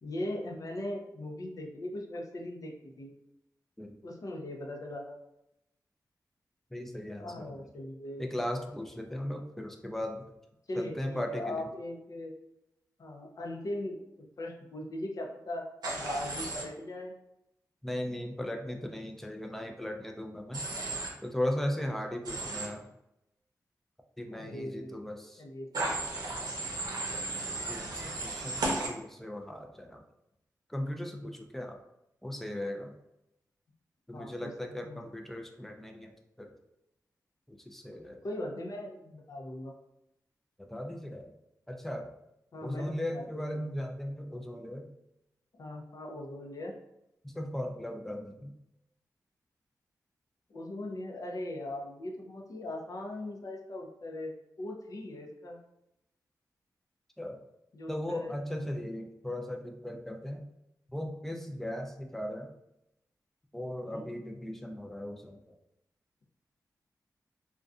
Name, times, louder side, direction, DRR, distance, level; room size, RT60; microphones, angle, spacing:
voice 1, 0.0-3.1 4.0-5.2 7.2-8.2 10.7-12.3 13.0-15.6 16.0-17.1 22.1-22.6 24.3-25.0 25.4-25.9 34.1-34.5 34.8-35.0 38.2-39.7 42.5-43.6 45.6-46.7 50.5-54.3 54.6-55.6 57.7-58.4 63.8-64.1, left 1 dB, 60° left, 1 dB, 0.5 m, -39 dB
voice 2, 6.7-7.6 8.2-10.3 10.8-11.6 17.8-20.6 21.2-22.8 24.2-25.4 27.7-30.0 30.7-31.8 32.2-32.9 34.1-36.1 36.4-36.5 37.5-38.2 40.7-41.3 41.7-42.1 42.6-44.9 47.2-48.6 57.2-57.4 57.9-60.5 60.9-62.5 63.5-65.6, left 1 dB, 5° left, 3 dB, 0.4 m, -37 dB
Human voice / Train, 15.8-16.6 20.5-21.1 22.2-22.7 25.7-28.9, right 2 dB, 80° right, 0.6 m, -34 dB
2.5 x 2.2 x 2.4 m, 0.85 s
cardioid pair, 75°, 7 cm